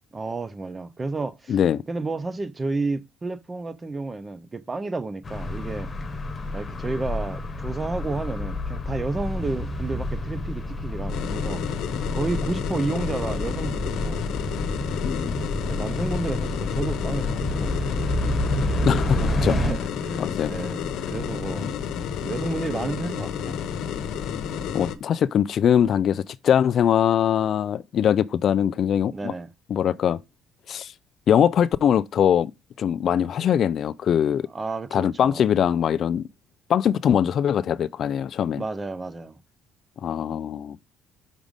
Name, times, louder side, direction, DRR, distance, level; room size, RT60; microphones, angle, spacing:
voice 1, 0.1-1.6 1.9-5.9 6.5-11.6 12.1-14.2 15.6-18.0 19.5-21.7 22.2-23.6 29.1-29.5 34.5-35.4 38.6-39.4, right 3 dB, 15° right, 0.6 m, -31 dB
voice 2, 1.5-1.8 15.0-15.4 18.9-19.6 20.2-20.5 21.6-21.7 24.7-29.3 29.7-30.2 30.7-30.9 31.3-32.5 32.8-34.5 34.9-36.3 36.7-38.6 40.0-40.8, left 9 dB, 45° left, 0.3 m, -22 dB
sound 1, 5.2-19.7, left 1 dB, 20° left, 1.2 m, -29 dB
sound 2, 11.1-25.0, left 7 dB, 65° left, 0.9 m, -31 dB
6.1 x 5.4 x 5.0 m
cardioid pair, 170°, 0 cm